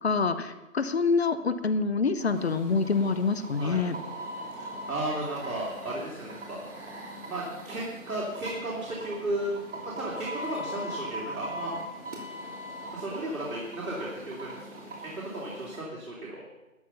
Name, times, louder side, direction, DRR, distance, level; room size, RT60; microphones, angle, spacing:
voice 1, 0.0-4.0, left 4 dB, 50° left, 11 dB, 0.8 m, -26 dB
sound 1, 2.2-15.8, equal, 55° right, 3.2 m, -41 dB
voice 2, 4.5-6.6 7.3-9.6 9.8-11.7 12.9-14.6 15.0-16.6, right 1 dB, 85° right, -5 dB, 3.3 m, -34 dB
13.0 x 7.5 x 5.6 m, 1.1 s
figure-of-eight pair, 165°, 42 cm